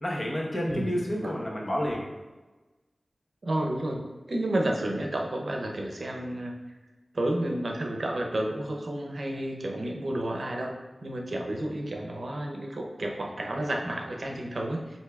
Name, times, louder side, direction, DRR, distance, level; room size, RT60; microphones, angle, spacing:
voice 1, 0.0-2.1, equal, 40° left, -2 dB, 1.0 m, -30 dB
voice 2, 3.4-6.5 7.1-10.7 11.0-15.0, right 1 dB, 65° right, 1 dB, 0.6 m, -31 dB
8.0 x 2.7 x 2.3 m, 1.2 s
wide cardioid pair, 80°, 0 cm